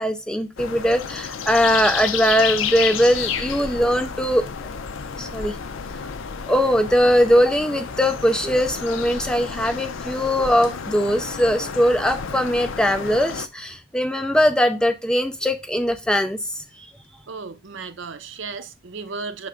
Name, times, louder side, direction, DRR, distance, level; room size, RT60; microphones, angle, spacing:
voice 1, 0.0-4.5 5.2-5.6 6.5-16.9, equal, 5° left, 0.4 m, -20 dB
sound 1, 0.6-13.5, left 7 dB, 65° left, 0.5 m, -31 dB
voice 2, 17.3-19.5, right 4 dB, 55° right, 0.6 m, -34 dB
6.4 x 3.4 x 5.0 m
head